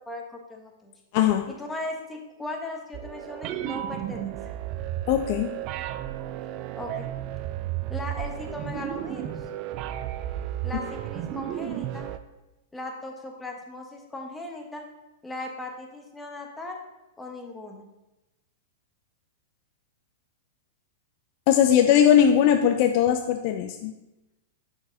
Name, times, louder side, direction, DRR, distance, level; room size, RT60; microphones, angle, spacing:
voice 1, 0.1-0.9 1.5-4.4 6.8-7.1 7.9-9.4 10.6-12.1 12.7-14.8 15.2-16.8 17.2-17.8, left 2 dB, 10° left, 2 dB, 1.1 m, -38 dB
voice 2, 1.1-1.5 5.1-5.5 21.5-23.9, left 9 dB, 50° left, 6 dB, 0.4 m, -20 dB
sound 1, 2.9-12.2, right 12 dB, 40° right, 0.4 m, -33 dB
6.9 x 6.1 x 2.7 m, 0.98 s
hypercardioid pair, 105°, 0 cm